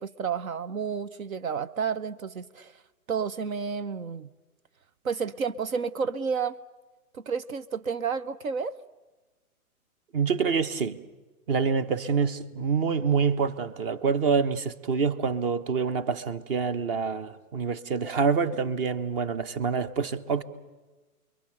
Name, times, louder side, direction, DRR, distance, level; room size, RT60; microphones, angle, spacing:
voice 1, 0.0-2.8 3.1-4.3 5.0-6.6 7.1-8.7, right 6 dB, 65° right, 0.9 m, -31 dB
voice 2, 10.1-11.0 11.5-20.4, right 5 dB, 40° right, 1.2 m, -26 dB
29.0 x 22.5 x 6.7 m
figure-of-eight pair, 120°, 44 cm